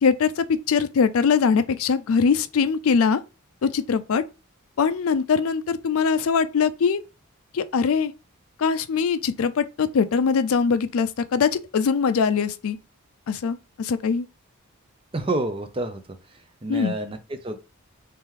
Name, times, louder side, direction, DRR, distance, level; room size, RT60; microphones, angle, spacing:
voice 1, 0.0-3.2 3.6-4.2 4.8-7.0 7.5-8.1 8.6-12.8 13.3-14.3 16.7-16.9, left 6 dB, 70° left, 0.4 m, -22 dB
voice 2, 15.1-16.0 16.6-17.6, right 2 dB, 25° right, 0.5 m, -28 dB
3.3 x 3.0 x 3.6 m
head